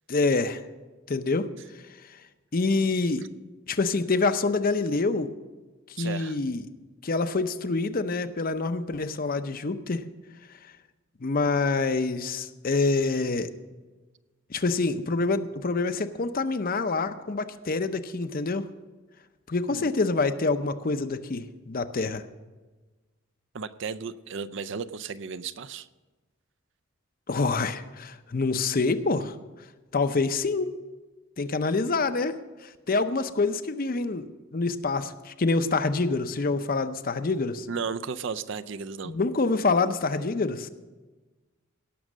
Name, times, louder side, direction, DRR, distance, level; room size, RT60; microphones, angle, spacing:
voice 1, 0.1-0.6 1.1-1.5 2.5-3.2 3.7-5.3 6.0-6.7 7.0-10.0 11.2-13.5 14.5-18.7 19.5-22.2 27.3-29.3 29.9-30.7 31.4-32.4 32.6-34.2 34.5-37.7 39.1-40.7, left 3 dB, 45° left, 10 dB, 0.6 m, -26 dB
voice 2, 6.0-6.4 19.7-19.9 23.5-25.9 37.7-39.1, right 5 dB, 60° right, 14 dB, 0.5 m, -34 dB
17.5 x 6.3 x 6.2 m, 1.2 s
head